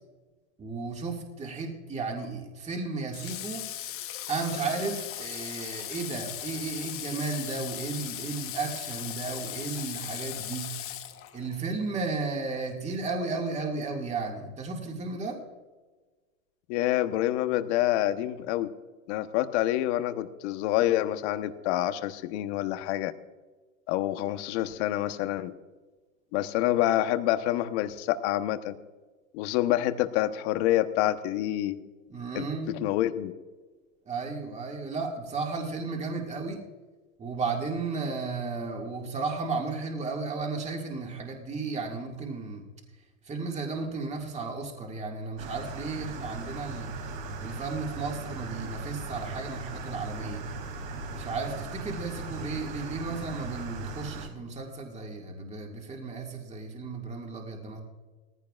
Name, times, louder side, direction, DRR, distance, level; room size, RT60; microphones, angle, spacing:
voice 1, 0.6-3.7 4.3-10.8 11.3-15.4 32.1-32.9 34.1-36.6 37.2-42.7 42.9-47.0 47.4-50.4 51.1-57.8, right 4 dB, 15° right, 1 dB, 2.1 m, -34 dB
Water / Water tap faucet, 3.1-11.6, left 12 dB, 35° left, 1.1 m, -38 dB
voice 2, 16.7-18.7 19.1-23.1 23.9-25.5 26.3-28.8 29.3-31.8 32.3-32.5 32.8-33.3, left 14 dB, 55° left, 10 dB, 1.1 m, -27 dB
sound 1, 45.4-54.3, right 3 dB, 70° right, 3.7 m, -38 dB
18.5 x 15.5 x 2.5 m, 1.3 s
hypercardioid pair, 125°, 41 cm